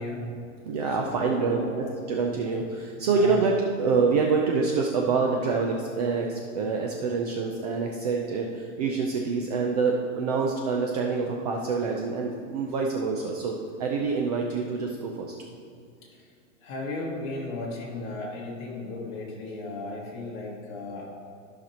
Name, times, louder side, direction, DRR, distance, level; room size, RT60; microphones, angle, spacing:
voice 1, 0.0-0.6 1.0-1.9 3.0-3.4 16.6-21.1, left 2 dB, 30° left, -4 dB, 2.0 m, -35 dB
voice 2, 0.7-3.5 3.8-8.5 8.8-15.3, right 4 dB, 30° right, 1 dB, 0.5 m, -26 dB
13.5 x 5.9 x 2.9 m, 2.3 s
supercardioid pair, 160°, 40 cm